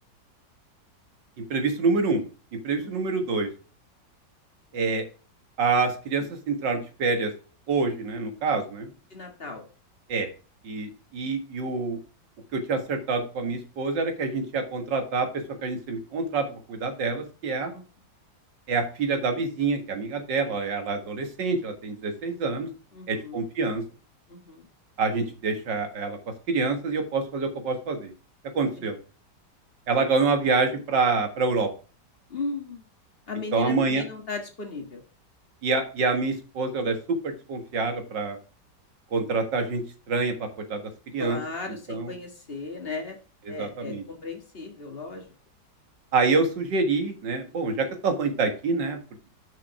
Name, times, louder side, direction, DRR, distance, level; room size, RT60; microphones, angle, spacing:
voice 1, 1.5-2.2 2.6-3.5 4.7-5.0 5.6-7.3 7.7-8.9 10.1-10.3 10.6-12.0 12.5-15.3 15.6-17.7 18.7-22.7 23.1-23.8 25.0-26.2 26.5-28.1 28.6-29.0 29.9-31.7 33.5-34.0 35.6-38.4 39.1-39.8 40.1-40.8 41.1-41.4 41.9-42.1 43.5-44.0 46.1-49.0, right 4 dB, 75° right, 5 dB, 2.3 m, -26 dB
voice 2, 9.1-9.7 17.7-17.8 22.9-23.4 24.3-24.7 28.8-28.9 32.3-32.8 33.3-35.0 41.2-43.2 43.5-45.3, left 3 dB, 35° left, 3 dB, 1.8 m, -36 dB
6.5 x 5.8 x 5.8 m, 0.36 s
omnidirectional pair, 2.0 m